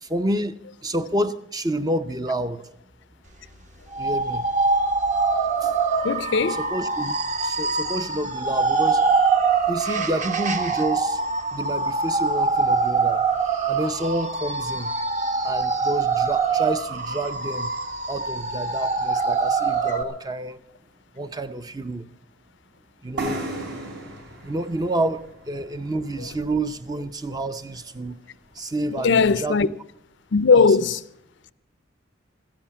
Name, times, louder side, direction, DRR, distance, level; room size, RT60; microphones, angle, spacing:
voice 1, 0.0-2.6 4.0-4.4 5.6-5.7 6.6-7.2 7.4-9.0 9.7-11.2 11.5-13.2 13.7-14.9 15.4-17.7 18.1-20.6 21.1-22.1 23.0-23.4 24.4-28.2 28.5-29.6 30.5-30.7, right 1 dB, 20° right, 0.5 m, -29 dB
sound 1, 3.9-20.0, right 4 dB, 35° right, 1.1 m, -24 dB
voice 2, 6.0-6.6 7.8-7.9 26.2-26.3 29.0-29.7 30.3-31.0, left 5 dB, 65° left, 0.5 m, -19 dB
sound 2, 23.2-26.8, right 1 dB, 60° right, 3.4 m, -35 dB
15.0 x 10.5 x 7.3 m
head